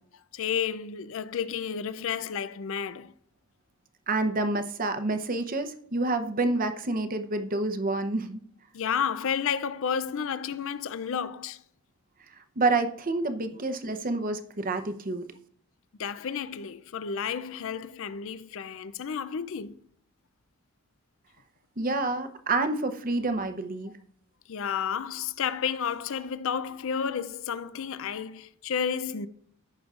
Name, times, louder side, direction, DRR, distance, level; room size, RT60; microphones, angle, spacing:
voice 1, 0.3-3.1 8.7-11.6 16.0-19.8 24.5-29.3, left 7 dB, 60° left, 0.5 m, -31 dB
voice 2, 4.1-8.4 12.6-15.3 21.8-23.9, right 2 dB, 40° right, 0.7 m, -28 dB
14.5 x 6.2 x 2.5 m
head